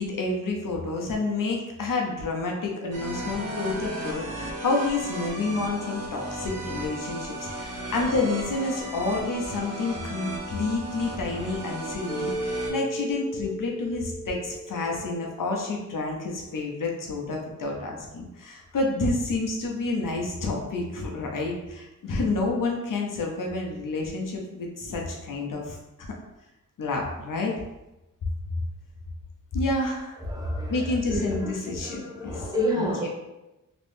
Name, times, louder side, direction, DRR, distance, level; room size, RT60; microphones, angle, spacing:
voice 1, 0.0-26.1 26.8-27.5 29.5-30.1 30.7-32.5 32.8-33.1, left 3 dB, 70° left, 0 dB, 0.7 m, -29 dB
sound 1, 2.9-12.7, right 1 dB, 50° right, 0.8 m, -35 dB
Mallet percussion, 12.1-16.2, right 1 dB, 5° left, 1.1 m, -35 dB
voice 2, 30.2-33.1, equal, 10° right, -4 dB, 0.6 m, -30 dB
3.0 x 2.6 x 3.4 m, 0.97 s
wide cardioid pair, 160°, 33 cm